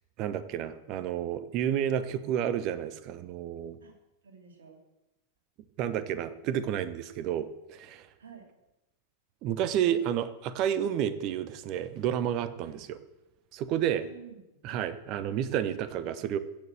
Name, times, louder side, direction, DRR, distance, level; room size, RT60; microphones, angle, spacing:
voice 1, 0.2-3.8 5.8-8.1 9.4-13.0 13.5-14.0 14.6-16.4, right 10 dB, 40° right, 14 dB, 0.9 m, -30 dB
voice 2, 4.2-4.8 8.2-8.5 9.8-10.0 12.6-12.8 13.7-14.9, right 6 dB, 65° right, 3 dB, 2.9 m, -51 dB
16.0 x 6.8 x 7.5 m, 0.94 s
figure-of-eight pair, 90°, 0 cm